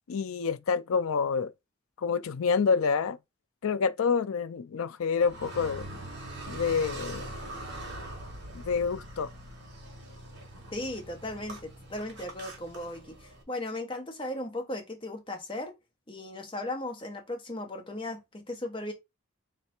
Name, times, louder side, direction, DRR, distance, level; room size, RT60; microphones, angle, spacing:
voice 1, 0.1-1.5 2.0-3.2 3.6-5.8 6.5-7.3 8.5-9.3, left 5 dB, 75° left, 0.4 m, -27 dB
Car, 5.2-13.4, right 1 dB, 50° right, 1.7 m, -42 dB
voice 2, 10.7-15.7 16.1-18.9, left 1 dB, 25° left, 1.0 m, -37 dB
3.3 x 3.3 x 4.3 m
head